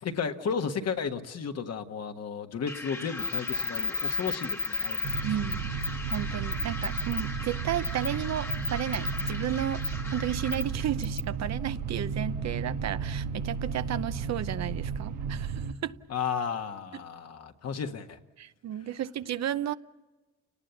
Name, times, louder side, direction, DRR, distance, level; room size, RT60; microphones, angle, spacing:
voice 1, 0.0-5.4 16.1-18.2, left 6 dB, 55° left, 5 dB, 1.6 m, -33 dB
sound 1, 2.7-10.9, left 2 dB, 5° left, 1.3 m, -41 dB
sound 2, 3.2-5.2 5.5-5.6 5.8-6.2 6.5-7.2 7.8-8.1 8.5-9.3 9.8-9.9 10.5-10.6 11.0-11.2, left 4 dB, 35° left, 0.8 m, -31 dB
sound 3, 5.0-15.7, right 6 dB, 85° right, 1.4 m, -33 dB
voice 2, 5.2-5.7 6.1-9.8 10.1-16.0 18.4-19.7, right 11 dB, 60° right, 12 dB, 0.8 m, -33 dB
29.5 x 19.0 x 7.1 m, 1.1 s
cardioid pair, 90°, 30 cm